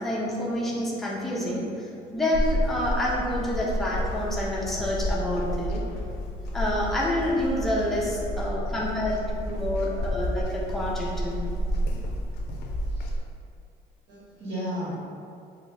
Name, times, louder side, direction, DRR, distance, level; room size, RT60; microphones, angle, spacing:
voice 1, 0.0-5.8 6.5-11.5, left 1 dB, ahead, -5 dB, 0.5 m, -28 dB
sound 1, 2.3-13.2, equal, 80° left, 0.4 m, -30 dB
voice 2, 8.0-8.8 9.6-9.8 12.9-13.1 14.1-15.0, equal, 70° right, -10 dB, 1.3 m, -36 dB
2.9 x 2.3 x 3.4 m, 2.4 s
cardioid pair, 110°, 17 cm